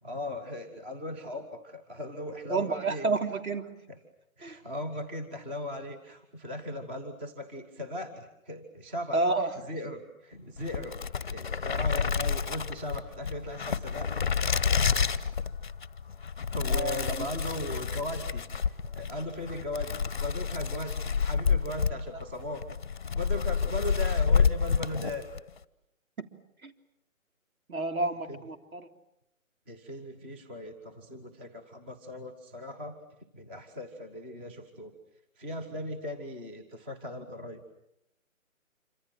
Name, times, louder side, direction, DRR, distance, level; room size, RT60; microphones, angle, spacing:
voice 1, 0.0-3.1 3.9-4.0 4.4-9.3 9.7-14.1 16.5-22.7 23.1-25.3 28.3-28.4 29.7-33.0 33.3-34.9 35.4-37.6, left 1 dB, 10° right, 4 dB, 1.1 m, -38 dB
voice 2, 2.5-3.6 4.4-4.6 9.1-9.5 16.7-17.3 26.2-26.3 26.6-26.7 27.7-28.9, right 3 dB, 90° right, 5 dB, 3.7 m, -30 dB
sound 1, 10.6-25.5, left 6 dB, 35° left, 0.9 m, -29 dB
27.0 x 25.5 x 7.7 m, 0.81 s
hypercardioid pair, 170°, 41 cm